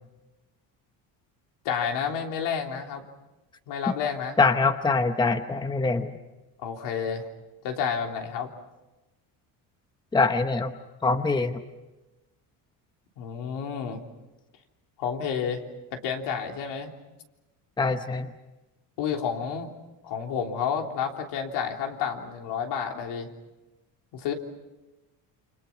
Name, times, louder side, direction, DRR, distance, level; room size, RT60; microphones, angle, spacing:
voice 1, 1.6-3.0 3.7-4.4 6.6-7.3 7.6-8.5 13.2-14.0 15.0-15.6 15.9-16.9 19.0-19.7 20.0-23.3 24.1-24.3, left 7 dB, 75° left, 2 dB, 3.5 m, -30 dB
voice 2, 4.4-6.2 10.1-10.7 11.0-11.6 17.8-18.3, left 3 dB, 10° left, 9 dB, 0.9 m, -24 dB
29.0 x 26.5 x 5.8 m, 1.1 s
cardioid pair, 140°, 41 cm